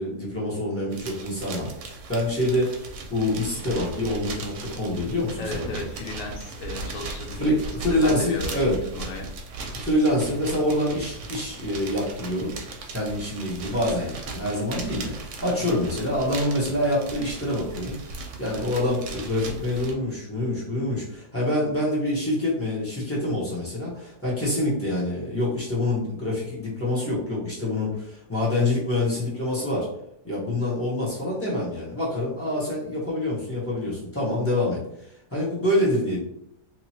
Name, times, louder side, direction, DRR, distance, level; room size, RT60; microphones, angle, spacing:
voice 1, 0.0-2.7 3.1-5.8 7.4-8.8 9.7-12.5 12.9-29.9 30.2-36.2, left 1 dB, 10° left, -7 dB, 0.8 m, -26 dB
sound 1, 0.9-19.9, right 3 dB, 70° right, 1.0 m, -37 dB
voice 2, 5.4-7.5 7.9-9.3 15.4-15.7, left 2 dB, 65° left, 1 dB, 0.9 m, -35 dB
2.9 x 2.6 x 2.8 m, 0.74 s
omnidirectional pair, 1.8 m